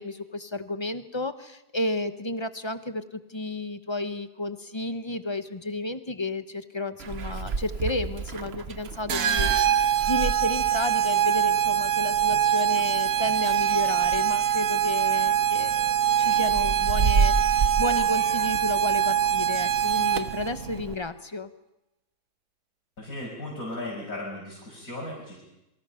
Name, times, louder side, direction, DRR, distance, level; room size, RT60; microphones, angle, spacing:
voice 1, 0.0-9.5 10.1-21.5, left 2 dB, 20° left, 10 dB, 0.9 m, -32 dB
Meow, 7.0-20.9, right 4 dB, 45° right, 1.1 m, -32 dB
sound 1, 9.1-20.5, right 10 dB, 80° right, 1.6 m, -24 dB
voice 2, 23.0-25.4, left 1 dB, 75° left, -5 dB, 6.6 m, -36 dB
27.5 x 24.0 x 5.8 m, 0.90 s
omnidirectional pair, 1.6 m